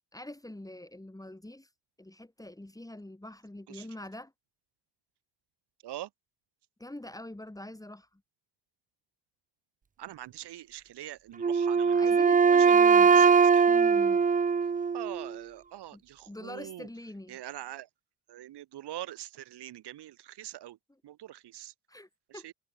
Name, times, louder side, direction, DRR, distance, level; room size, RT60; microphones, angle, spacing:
voice 1, 0.1-1.7 2.0-4.3 6.8-8.2 11.9-13.3 13.7-14.3 15.9-16.0 16.3-17.4 21.9-22.5, left 1 dB, 10° left, 6.3 m, -44 dB
voice 2, 10.0-12.0 12.5-13.6 14.9-16.9 17.3-17.9 18.3-20.8 21.0-21.7 22.3-22.5, right 13 dB, 80° right, 2.7 m, -43 dB
Wind instrument woodwind instrument, 11.4-15.3, right 5 dB, 20° right, 0.5 m, -21 dB
cardioid pair, 95°, 40 cm